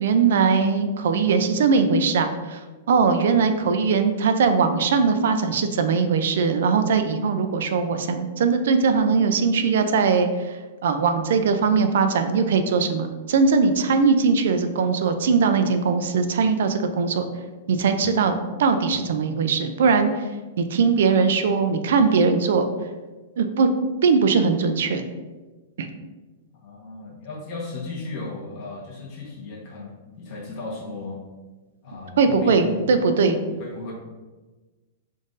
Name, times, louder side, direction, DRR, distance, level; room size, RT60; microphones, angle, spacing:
voice 1, 0.0-2.6 2.9-17.3 17.7-20.3 20.6-22.7 23.4-23.7 24.0-25.0 25.8-25.9 32.2-33.4, right 5 dB, 70° right, 8 dB, 0.4 m, -20 dB
voice 2, 26.6-31.2 31.8-32.9 33.5-33.9, left 2 dB, 40° left, -3 dB, 1.1 m, -35 dB
3.8 x 2.5 x 3.8 m, 1.2 s
hypercardioid pair, 150°, 0 cm